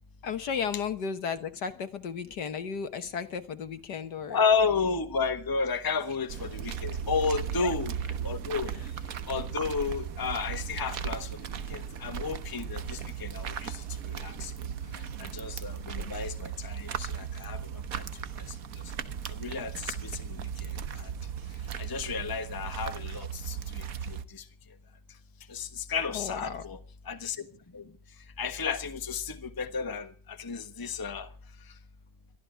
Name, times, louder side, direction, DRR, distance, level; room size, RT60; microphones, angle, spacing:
voice 1, 0.2-4.4 7.6-7.7 14.8-15.2 16.0-16.1 26.1-26.6, left 6 dB, 65° left, 1.8 m, -34 dB
voice 2, 4.3-7.9 8.2-8.7 9.3-11.4 11.7-14.5 15.2-17.6 18.0-18.1 19.3-21.1 21.8-24.4 25.5-26.8 27.1-27.4 27.7-27.9 28.4-31.3, left 5 dB, 15° left, 1.0 m, -32 dB
sound 1, 6.3-24.2, right 8 dB, 55° right, 1.3 m, -37 dB
22.5 x 14.0 x 4.6 m
omnidirectional pair, 2.0 m